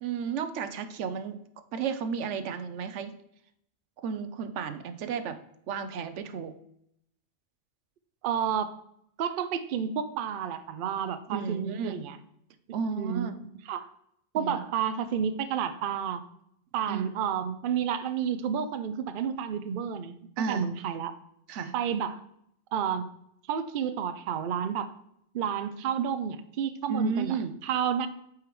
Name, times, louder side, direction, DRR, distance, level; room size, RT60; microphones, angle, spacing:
voice 1, 0.0-1.4 1.7-3.1 4.0-5.4 5.7-6.5 11.3-12.0 12.7-13.4 14.4-14.6 16.9-17.1 20.4-20.7 21.5-21.7 26.9-27.5, right 6 dB, 80° right, 10 dB, 0.9 m, -32 dB
voice 2, 8.2-8.7 9.2-12.2 12.9-13.3 13.7-13.9 14.3-16.2 16.7-20.2 20.5-21.1 21.7-22.2 22.7-23.1 23.5-24.9 25.3-27.4 27.6-28.1, right 8 dB, 60° right, 10 dB, 0.6 m, -30 dB
8.3 x 4.9 x 3.1 m, 0.73 s
omnidirectional pair, 1.2 m